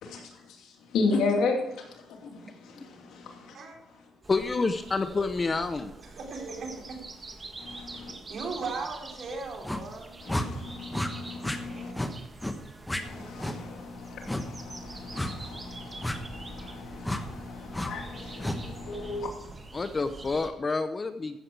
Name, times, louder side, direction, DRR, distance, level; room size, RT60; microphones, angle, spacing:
voice 1, 0.0-4.1 7.6-8.1 10.2-11.9 13.0-19.3, left 3 dB, 80° left, 2.7 m, -34 dB
sound 1, 4.2-20.5, right 3 dB, 30° right, 1.7 m, -46 dB
voice 2, 4.3-5.9 19.7-21.4, left 3 dB, 30° left, 0.7 m, -28 dB
voice 3, 6.0-7.0 8.3-10.2 11.7-12.3, right 4 dB, 60° right, 3.7 m, -38 dB
sound 2, 9.6-9.8 10.3-10.5 10.9-11.1 11.4-11.6 11.9-12.1 12.4-12.6 12.9-13.0 13.4-13.6 14.3-14.4 15.1-15.3 16.0-16.2 17.0-17.2 17.7-17.9 18.4-18.6, left 1 dB, 10° left, 1.3 m, -31 dB
14.5 x 7.7 x 4.7 m
cardioid pair, 90°, 0 cm